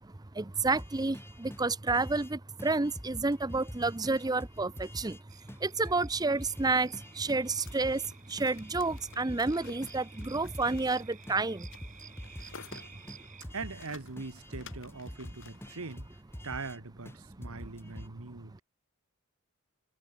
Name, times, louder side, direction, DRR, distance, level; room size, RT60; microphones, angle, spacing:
voice 1, 0.4-5.2 5.6-8.0 8.3-11.7 17.8-17.9, right 3 dB, 20° right, 0.6 m, -30 dB
sound 1, 0.6-2.3 2.6-5.2 5.5-5.6 5.8-8.1 8.4-11.0 11.3-11.4 11.6-13.9 14.2-16.8 17.1-17.2 17.4-18.1, equal, 10° left, 2.8 m, -46 dB
sound 2, 5.3-13.4, right 7 dB, 35° right, 7.2 m, -54 dB
sound 3, 6.6-16.0, left 5 dB, 65° left, 5.3 m, -54 dB
voice 2, 13.5-16.1 16.4-18.6, right 4 dB, 90° right, 1.4 m, -42 dB
head